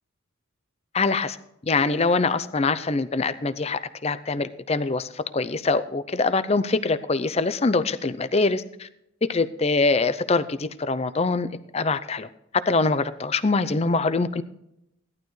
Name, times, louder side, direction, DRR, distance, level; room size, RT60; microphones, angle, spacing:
voice 1, 0.9-1.4 1.6-8.9 9.2-11.5 11.7-12.3 12.7-14.4, left 3 dB, 30° left, 13 dB, 0.5 m, -24 dB
16.5 x 11.5 x 3.2 m, 0.81 s
head